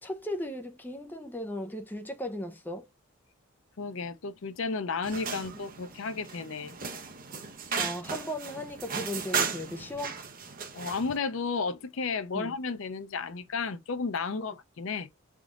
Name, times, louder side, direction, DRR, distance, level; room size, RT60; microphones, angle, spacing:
voice 1, 0.0-2.9 7.8-10.2 12.3-12.5, left 1 dB, 10° left, 0.5 m, -36 dB
voice 2, 3.8-6.8 10.7-15.1, left 4 dB, 65° left, 0.5 m, -33 dB
sound 1, 5.0-11.2, right 5 dB, 40° right, 0.8 m, -35 dB
4.7 x 3.6 x 2.4 m
head